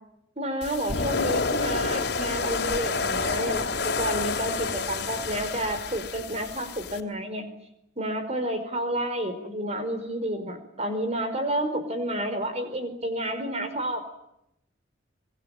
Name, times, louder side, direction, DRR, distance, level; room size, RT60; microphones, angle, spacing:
voice 1, 0.4-7.4 8.0-14.0, right 1 dB, 35° right, 8 dB, 4.9 m, -30 dB
sound 1, 0.6-7.0, left 4 dB, 60° left, 3.0 m, -29 dB
25.5 x 23.5 x 9.1 m, 0.81 s
head